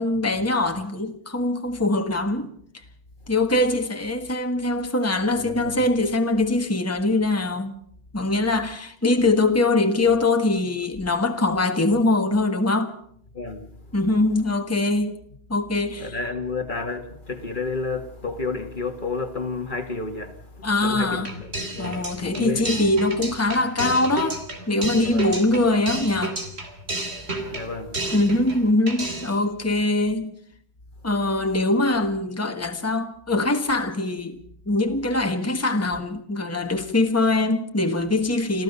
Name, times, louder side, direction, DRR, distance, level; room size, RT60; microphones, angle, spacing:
voice 1, 0.0-2.5 3.3-7.8 8.1-13.0 13.9-15.2 15.5-16.1 20.6-21.3 21.8-26.4 28.1-30.3 31.0-34.4 34.7-38.6, left 2 dB, 15° left, 1.5 m, -22 dB
voice 2, 5.3-5.9 13.3-13.7 16.0-22.7 25.0-25.3 27.5-28.1, left 3 dB, 50° left, 1.8 m, -31 dB
sound 1, 21.2-28.6 28.9-29.4, right 2 dB, 90° right, 3.3 m, -31 dB
26.0 x 15.0 x 6.8 m
omnidirectional pair, 1.1 m